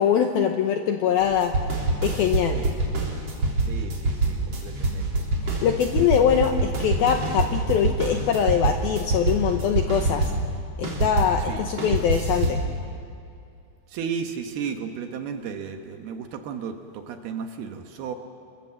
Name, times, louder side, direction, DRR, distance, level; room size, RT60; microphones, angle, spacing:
voice 1, 0.0-1.5 2.0-2.6 5.4-10.3 10.8-12.6, left 8 dB, 80° left, 5 dB, 2.2 m, -23 dB
sound 1, 1.2-11.4 11.8-12.6, right 2 dB, 35° right, 4.2 m, -25 dB
voice 2, 3.7-5.3 6.2-6.3 11.5-11.7 13.9-18.1, right 6 dB, 70° right, 6 dB, 2.6 m, -34 dB
30.0 x 22.5 x 7.5 m, 2.4 s
omnidirectional pair, 5.4 m